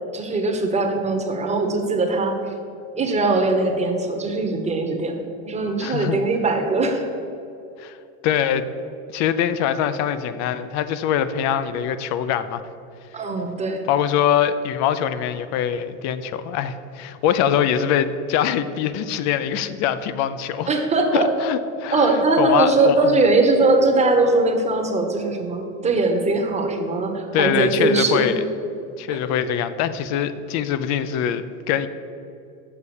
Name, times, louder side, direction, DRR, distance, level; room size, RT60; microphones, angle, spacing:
voice 1, 0.1-2.4 2.9-5.2 5.4-7.0 13.1-13.8 20.7-21.3 21.9-28.3, right 3 dB, 15° right, 3 dB, 1.0 m, -20 dB
voice 2, 5.8-6.2 7.8-8.0 8.2-8.7 9.1-12.6 13.9-20.7 21.1-23.1 27.3-28.3 29.0-31.9, left 9 dB, 40° left, 13 dB, 0.5 m, -23 dB
6.6 x 5.5 x 7.0 m, 2.6 s
supercardioid pair, 125°, 43 cm